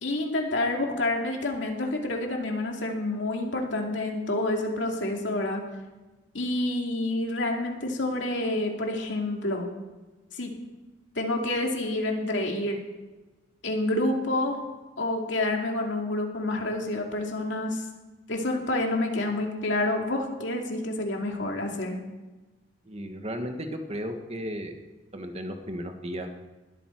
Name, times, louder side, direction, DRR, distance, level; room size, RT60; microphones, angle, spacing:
voice 1, 0.0-5.6 6.3-9.7 10.3-10.5 11.1-12.8 13.6-14.6 15.0-17.8 18.3-22.0, left 2 dB, 75° left, 1 dB, 2.5 m, -28 dB
voice 2, 22.8-24.8 25.1-26.3, equal, 35° right, 5 dB, 1.5 m, -34 dB
20.0 x 12.5 x 4.5 m, 1.2 s
head